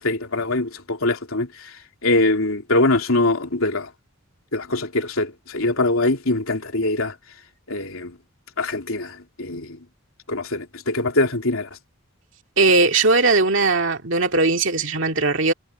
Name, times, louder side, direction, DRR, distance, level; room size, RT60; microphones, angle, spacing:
voice 1, 0.0-3.9 4.5-7.1 7.7-8.2 8.6-9.8 10.3-11.7, left 2 dB, 75° left, 3.1 m, -23 dB
voice 2, 12.6-15.5, right 3 dB, 60° right, 2.3 m, -19 dB
head